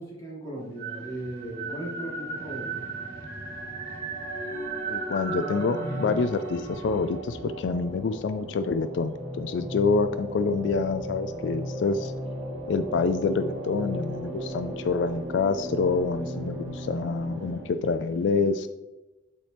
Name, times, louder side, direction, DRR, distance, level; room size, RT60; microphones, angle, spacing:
voice 1, 0.0-2.8, right 1 dB, 20° left, -4 dB, 2.1 m, -37 dB
sound 1, 0.6-17.7, right 1 dB, 50° right, 2.3 m, -35 dB
voice 2, 4.9-12.1 12.7-18.7, left 4 dB, 70° left, 10 dB, 0.3 m, -27 dB
8.8 x 4.4 x 3.4 m, 1.0 s
head